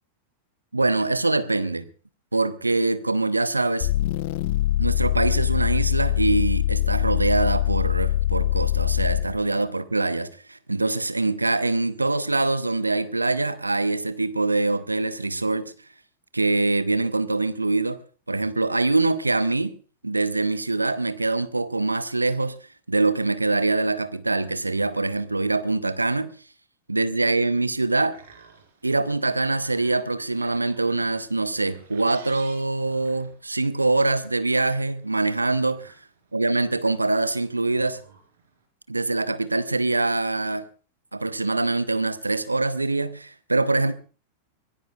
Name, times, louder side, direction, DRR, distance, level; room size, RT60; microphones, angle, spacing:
voice 1, 0.7-1.9 2.3-3.9 4.8-15.7 16.3-18.0 18.3-19.7 20.0-26.3 26.9-28.2 28.8-35.9 36.3-38.0 38.9-40.7 41.1-43.9, right 2 dB, 80° right, 0.7 m, -24 dB
sound 1, 3.8-9.4, left 14 dB, 50° left, 0.9 m, -23 dB
sound 2, 27.8-38.6, right 6 dB, 60° right, 4.6 m, -53 dB
24.0 x 18.0 x 2.4 m
figure-of-eight pair, 90°, 0 cm